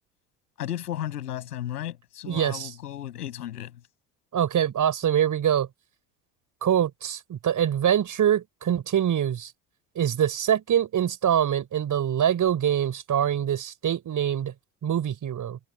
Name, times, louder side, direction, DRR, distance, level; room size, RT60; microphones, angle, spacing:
voice 1, 0.6-3.7, left 11 dB, 75° left, 6.9 m, -34 dB
voice 2, 2.3-2.7 4.3-5.7 6.6-9.5 10.0-14.5 14.8-15.6, right 10 dB, 40° right, 5.4 m, -24 dB
figure-of-eight pair, 60°, 47 cm